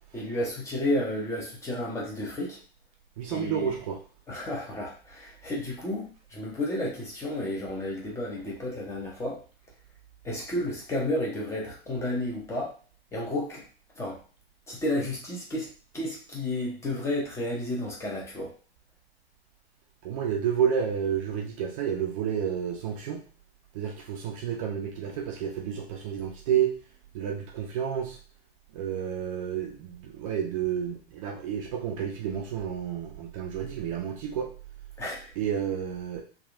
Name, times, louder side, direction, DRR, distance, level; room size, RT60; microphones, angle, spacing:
voice 1, 0.1-2.6 3.3-3.8 4.3-9.4 10.2-12.8 13.1-13.6 14.0-14.2 14.7-15.7 15.9-18.5 35.0-35.3, left 1 dB, 10° left, -3 dB, 0.6 m, -32 dB
voice 2, 3.2-4.0 20.0-23.2 23.7-26.7 27.1-28.2 28.7-34.5 35.4-36.2, right 8 dB, 35° right, 1 dB, 0.5 m, -30 dB
3.5 x 2.4 x 2.4 m, 0.38 s
figure-of-eight pair, 110°, 31 cm